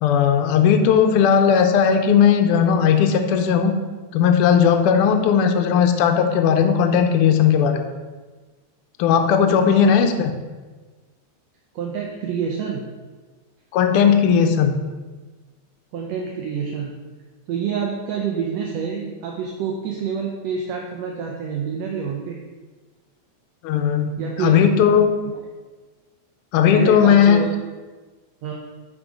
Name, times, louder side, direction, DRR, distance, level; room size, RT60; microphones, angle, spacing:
voice 1, 0.0-3.7 4.1-7.9 9.0-10.4 13.7-14.7 23.6-25.1 26.5-27.4, left 7 dB, 80° left, 6 dB, 1.3 m, -17 dB
voice 2, 9.7-10.0 11.8-12.9 15.9-17.0 17.5-22.4 24.2-24.6 26.7-27.5 28.4-28.5, right 6 dB, 70° right, 0 dB, 1.9 m, -27 dB
10.5 x 3.8 x 5.1 m, 1.3 s
omnidirectional pair, 3.3 m